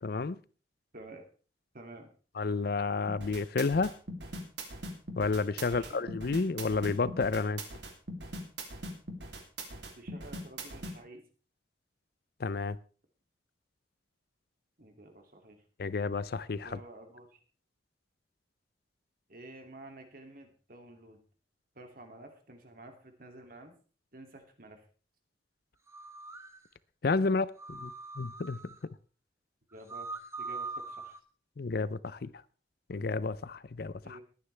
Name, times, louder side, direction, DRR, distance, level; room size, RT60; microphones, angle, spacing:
voice 1, 0.0-0.4 2.4-3.9 5.2-7.6 12.4-12.8 15.8-16.8 27.0-28.6 31.6-32.3 32.9-34.2, left 4 dB, 55° left, 0.5 m, -31 dB
voice 2, 0.9-1.2 1.7-2.1 5.6-6.0 10.0-11.2 14.8-15.6 16.6-17.4 19.3-21.2 21.7-23.7 24.1-24.8 29.7-30.1 30.4-31.2 34.0-34.2, right 2 dB, 50° right, 2.6 m, -50 dB
sound 1, 3.1-10.9, right 1 dB, 65° right, 3.0 m, -41 dB
sound 2, 25.9-26.6 27.6-28.8 29.7-31.2, right 3 dB, 15° right, 1.0 m, -42 dB
21.0 x 9.7 x 3.4 m
head